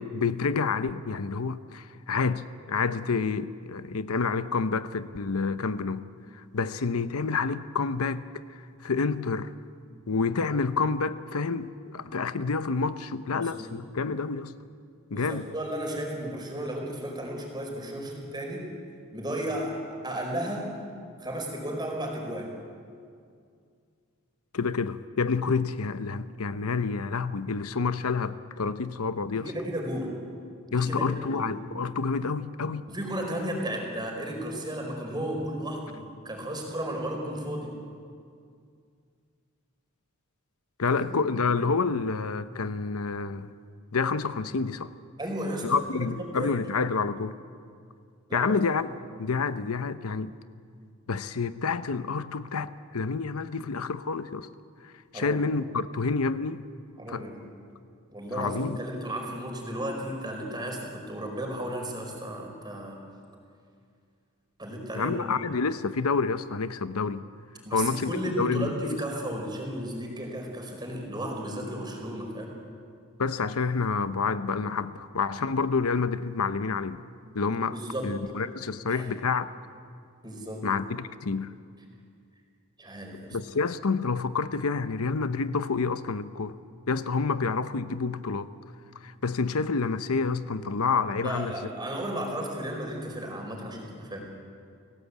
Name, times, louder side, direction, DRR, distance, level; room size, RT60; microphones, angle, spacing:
voice 1, 0.0-6.1 6.3-9.5 10.1-14.5 15.1-15.5 24.5-29.5 30.7-32.9 40.8-43.5 43.9-44.9 45.6-47.3 48.3-48.9 49.2-50.3 51.1-54.5 54.8-56.6 57.1-57.3 58.3-58.8 65.0-67.3 67.7-69.0 73.2-77.0 77.3-77.8 78.0-79.5 80.6-81.5 83.3-86.5 86.9-88.5 89.0-91.5, left 4 dB, 80° left, 0.8 m, -28 dB
voice 2, 15.1-18.7 19.1-20.7 21.2-22.5 29.3-30.2 30.7-31.5 32.9-37.7 40.9-41.2 45.2-46.5 48.3-48.6 55.1-55.4 57.0-57.4 58.1-63.0 64.6-65.4 67.6-72.5 77.7-78.1 78.8-79.1 80.2-80.7 82.8-83.4 91.2-94.2, right 1 dB, 20° right, 4.7 m, -34 dB
29.0 x 17.5 x 8.2 m
head